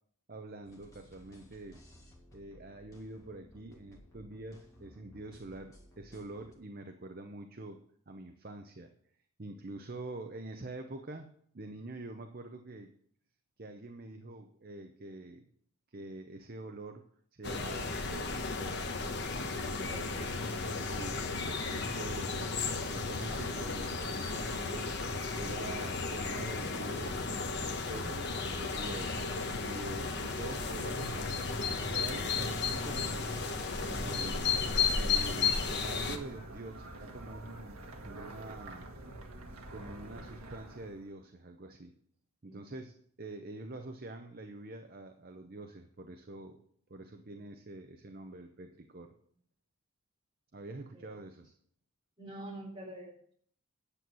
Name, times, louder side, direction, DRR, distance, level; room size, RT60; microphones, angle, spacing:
voice 1, 0.3-1.8 2.3-7.8 8.1-8.9 9.4-12.9 13.6-15.4 15.9-17.0 17.3-18.8 19.5-20.1 20.7-27.2 27.6-29.2 29.6-31.5 31.9-33.5 33.7-34.5 34.9-38.9 39.7-41.9 42.4-46.6 46.9-49.1 50.5-51.5, right 2 dB, 45° right, 5 dB, 0.7 m, -46 dB
sound 1, 0.6-6.5, equal, 15° left, 1.8 m, -58 dB
sound 2, 17.4-36.2, left 4 dB, 50° left, 1.2 m, -34 dB
voice 2, 19.9-20.5 42.4-42.6 50.9-51.0 52.2-53.1, right 1 dB, 20° right, -4 dB, 4.0 m, -46 dB
sound 3, 27.7-41.1, right 1 dB, 85° right, 1.6 m, -48 dB
9.8 x 7.8 x 6.1 m, 0.63 s
head